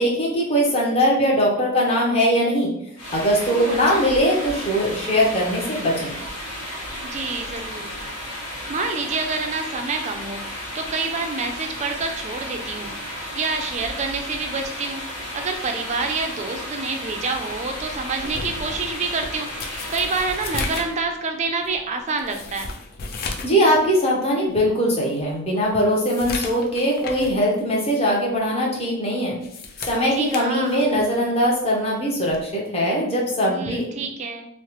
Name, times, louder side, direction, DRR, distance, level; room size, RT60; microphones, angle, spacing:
voice 1, 0.0-2.7 3.1-6.1 23.4-29.4 29.9-33.8, equal, 30° left, -3 dB, 0.7 m, -21 dB
Rivulet flows in the mountains, 3.0-21.0, equal, 70° left, 1.1 m, -33 dB
voice 2, 3.5-4.1 7.0-22.7 30.1-30.8 33.4-34.5, right 4 dB, 30° right, 5 dB, 0.3 m, -28 dB
sound 1, 18.2-23.6 24.0-24.1 24.6-24.7 25.2-27.4 27.8-28.0 29.2-31.2 32.3-32.5, left 3 dB, 45° left, 0.3 m, -35 dB
3.1 x 2.0 x 2.9 m, 0.74 s
head